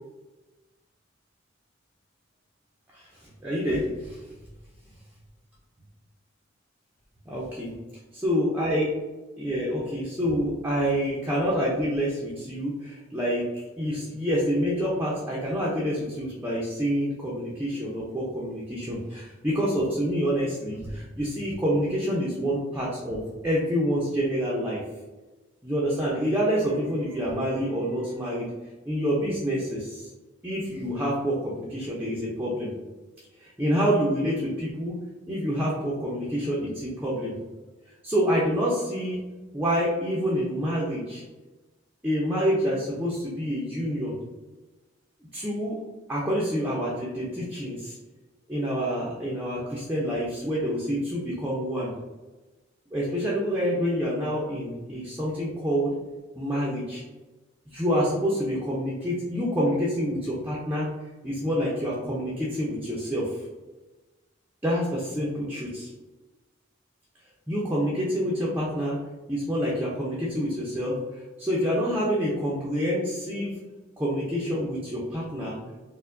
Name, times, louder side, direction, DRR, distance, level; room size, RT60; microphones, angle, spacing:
voice 1, 3.4-4.2 7.3-7.7 8.2-8.9 9.4-13.5 13.8-24.8 25.6-28.5 28.9-30.1 30.4-32.7 33.4-35.0 35.3-37.3 38.0-39.2 39.5-41.2 42.0-44.1 45.3-45.8 46.1-48.0 48.5-51.9 52.9-55.9 56.3-57.0 57.7-60.9 61.2-63.3 64.6-65.9 67.5-69.0 69.3-71.0 71.4-73.6 74.0-75.6, equal, 10° right, -6 dB, 0.5 m, -27 dB
4.3 x 2.1 x 2.5 m, 1.2 s
head